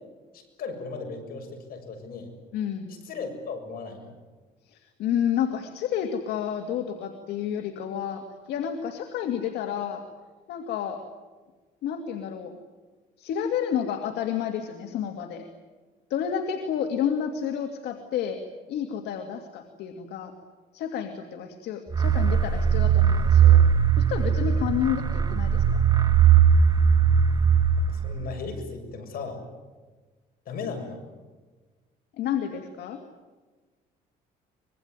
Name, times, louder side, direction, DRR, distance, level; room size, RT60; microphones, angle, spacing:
voice 1, 0.3-2.3 2.9-4.2 27.9-29.5 30.5-31.0, left 4 dB, 60° left, 5 dB, 7.2 m, -36 dB
voice 2, 2.5-2.9 4.7-10.0 10.5-11.0 11.8-12.6 13.2-15.5 16.1-18.4 18.7-20.3 20.7-23.6 24.0-25.8 32.2-33.0, left 9 dB, 80° left, 6 dB, 2.4 m, -30 dB
sound 1, 21.9-28.4, right 8 dB, 25° right, 1.9 m, -20 dB
25.0 x 22.0 x 9.6 m, 1.3 s
cardioid pair, 110°, 17 cm